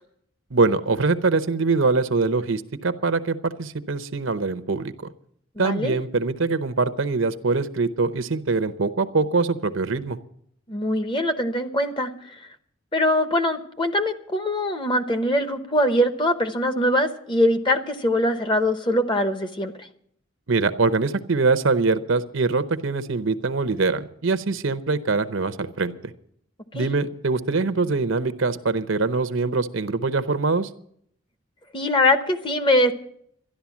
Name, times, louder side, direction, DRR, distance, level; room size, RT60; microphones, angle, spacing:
voice 1, 0.5-4.9 5.6-10.2 20.5-26.1 26.7-30.7, right 3 dB, 65° right, 11 dB, 0.8 m, -23 dB
voice 2, 5.6-6.0 10.7-12.1 12.9-19.7 26.7-26.9 31.7-32.9, left 1 dB, 20° left, 8 dB, 0.9 m, -22 dB
13.0 x 11.5 x 7.2 m, 0.68 s
head